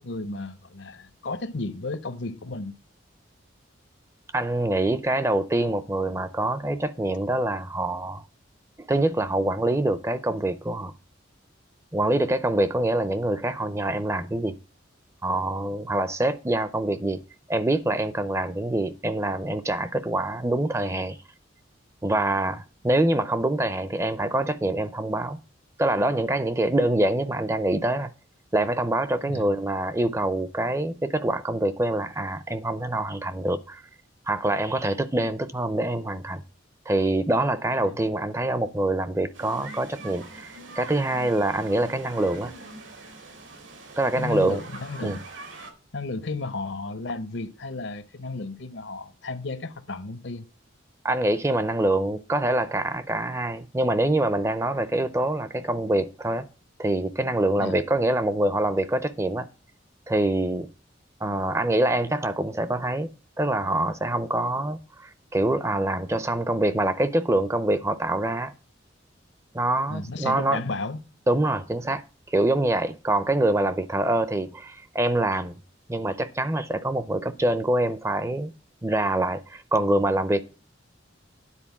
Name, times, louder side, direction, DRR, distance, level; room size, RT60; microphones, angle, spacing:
voice 1, 0.0-2.7 29.3-29.5 37.8-38.0 44.1-45.2 45.9-50.5 57.5-57.8 69.9-71.0, left 3 dB, 65° left, 0.7 m, -33 dB
voice 2, 4.3-8.2 8.9-10.9 11.9-14.6 15.2-17.2 17.5-21.2 22.0-25.4 25.8-28.1 28.5-33.8 34.3-36.4 36.9-42.5 44.0-44.6 45.0-45.2 51.0-56.5 56.8-59.5 60.1-60.7 61.2-63.1 63.4-68.5 69.5-70.6 71.3-72.0 72.3-75.6 75.9-78.5 78.8-80.4, right 1 dB, 15° right, 0.5 m, -25 dB
sound 1, 39.3-45.7, right 3 dB, 80° right, 1.9 m, -43 dB
10.0 x 4.3 x 7.1 m
head